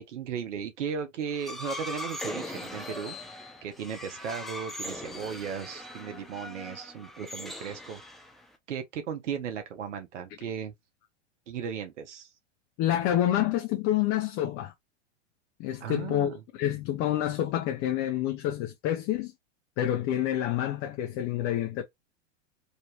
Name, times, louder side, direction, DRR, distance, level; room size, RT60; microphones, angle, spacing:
voice 1, 0.0-3.2 3.6-8.0 8.7-10.7 11.5-12.3 15.8-16.3, right 7 dB, 80° right, 0.9 m, -36 dB
sound 1, 1.3-8.6, left 1 dB, ahead, 0.3 m, -40 dB
voice 2, 12.8-14.7 15.6-19.3 19.8-21.8, left 12 dB, 35° left, 0.6 m, -28 dB
3.2 x 2.9 x 2.7 m
hypercardioid pair, 115°, 36 cm